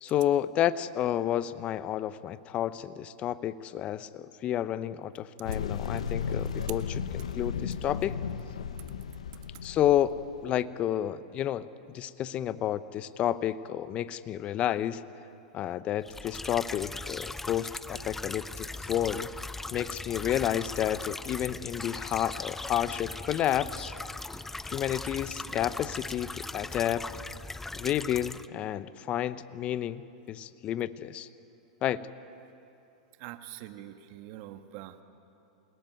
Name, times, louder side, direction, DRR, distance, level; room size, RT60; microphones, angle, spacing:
voice 1, 0.0-6.8 7.1-8.1 9.6-15.0 15.5-19.3 19.7-23.9 24.6-27.1 27.7-30.0 30.3-31.3 31.8-32.1, left 11 dB, 35° left, 15 dB, 0.9 m, -30 dB
sound 1, 5.4-10.6, left 6 dB, 85° left, 1.1 m, -35 dB
sound 2, 16.1-28.5, left 2 dB, 10° left, 0.6 m, -39 dB
voice 2, 33.2-35.0, right 13 dB, 55° right, 8 dB, 1.7 m, -44 dB
29.0 x 18.5 x 9.4 m, 2.8 s
hypercardioid pair, 105°, 3 cm